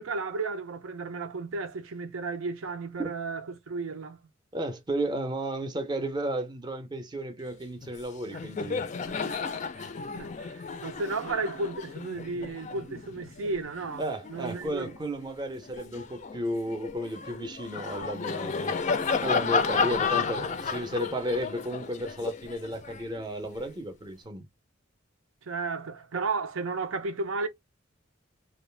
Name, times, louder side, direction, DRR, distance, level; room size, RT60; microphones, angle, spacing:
voice 1, 0.0-4.2 8.6-8.7 9.1-14.0 14.3-14.9 25.4-27.5, right 3 dB, 85° right, 0.6 m, -34 dB
voice 2, 4.5-8.9 14.0-18.8 19.2-24.5, right 1 dB, 20° right, 0.5 m, -33 dB
Laughter, 7.8-8.0 8.3-15.0 15.5-23.7, left 5 dB, 35° left, 0.4 m, -32 dB
2.4 x 2.3 x 3.2 m
head